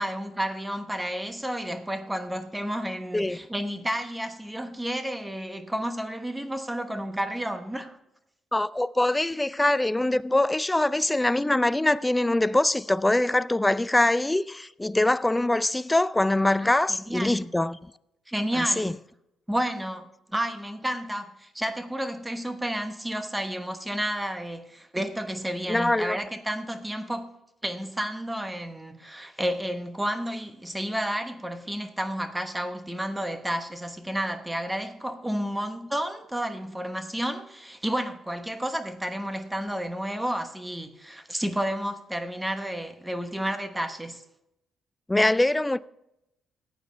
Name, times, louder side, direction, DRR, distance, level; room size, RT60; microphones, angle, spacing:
voice 1, 0.0-8.0 16.6-16.7 17.1-17.5 18.3-19.0 19.5-27.3 27.6-44.2, equal, 10° right, 1.2 m, -31 dB
voice 2, 8.5-17.9 18.5-18.9 25.7-26.2 45.1-45.8, left 1 dB, 10° left, 0.4 m, -23 dB
15.0 x 9.0 x 3.4 m
cardioid pair, 90°, 0 cm